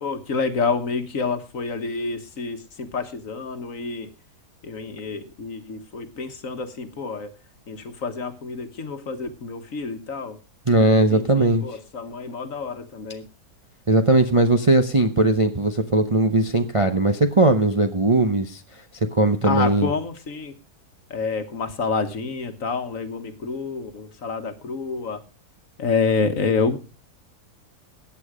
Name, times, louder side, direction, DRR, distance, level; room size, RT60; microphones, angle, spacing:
voice 1, 0.0-4.1 4.6-7.3 7.7-10.4 11.1-13.2 19.4-20.6 21.1-25.2 25.8-26.8, left 4 dB, 55° left, 8 dB, 1.7 m, -28 dB
voice 2, 10.7-11.6 13.9-18.6 19.1-19.9, right 2 dB, 30° right, 6 dB, 0.7 m, -19 dB
15.0 x 9.1 x 5.0 m, 0.32 s
omnidirectional pair, 1.7 m